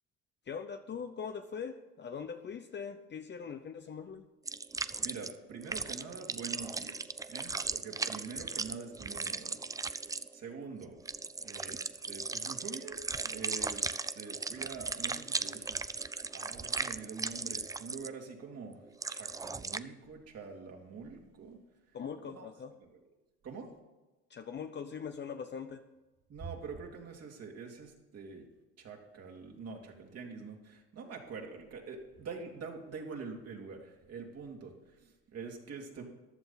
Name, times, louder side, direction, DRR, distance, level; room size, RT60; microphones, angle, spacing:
voice 1, 0.5-4.2 21.9-22.7 24.3-25.9, left 6 dB, 35° left, 7 dB, 0.8 m, -41 dB
sound 1, 4.5-5.4 5.6-19.8, right 4 dB, 10° right, 0.4 m, -37 dB
voice 2, 5.0-9.8 10.3-11.0 11.4-16.1 16.3-21.6 22.2-22.5 22.8-23.0 23.4-23.7 26.3-28.4 28.8-36.0, right 5 dB, 50° right, 1 dB, 2.7 m, -45 dB
14.5 x 11.0 x 4.1 m, 1.1 s
supercardioid pair, 85°, 31 cm